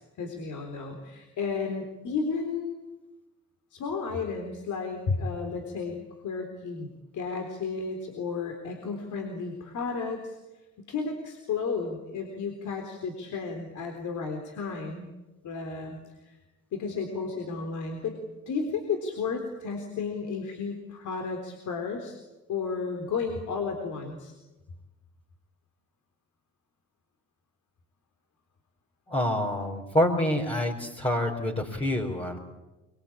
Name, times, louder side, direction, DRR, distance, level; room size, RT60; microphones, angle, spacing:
voice 1, 0.0-2.8 3.7-6.0 6.2-6.9 7.1-10.4 10.8-15.1 15.4-16.4 16.7-18.2 18.5-22.2 22.5-24.3, left 5 dB, 75° left, 3 dB, 3.9 m, -33 dB
voice 2, 29.1-32.4, left 1 dB, 20° left, -2 dB, 4.3 m, -27 dB
24.0 x 23.0 x 8.8 m, 1.1 s
cardioid pair, 90°, 30 cm